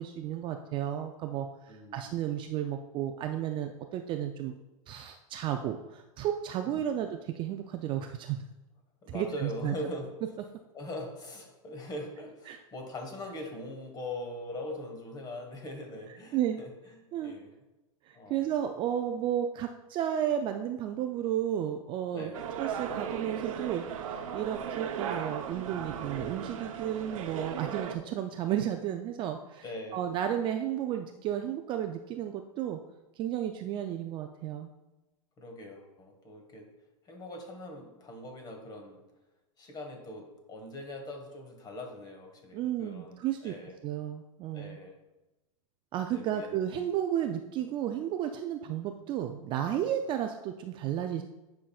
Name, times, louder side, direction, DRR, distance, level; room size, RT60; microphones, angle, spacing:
voice 1, 0.0-4.5 4.9-8.4 9.1-9.7 12.5-12.6 16.3-16.6 17.1-17.4 18.1-22.3 22.6-29.6 29.9-32.8 33.2-34.7 42.5-43.5 43.8-44.8 45.9-51.2, right 10 dB, 30° right, 5 dB, 0.4 m, -33 dB
voice 2, 1.7-2.1 6.6-7.0 9.0-10.1 10.7-17.5 18.1-18.5 22.1-22.6 29.6-30.0 35.4-36.7 37.0-39.0 39.6-43.8 44.5-45.0 46.1-46.6, left 1 dB, 25° left, 3 dB, 1.4 m, -42 dB
sound 1, 22.3-28.0, right 8 dB, 70° right, 0.8 m, -37 dB
9.9 x 5.8 x 2.3 m, 1.0 s
hypercardioid pair, 130°, 18 cm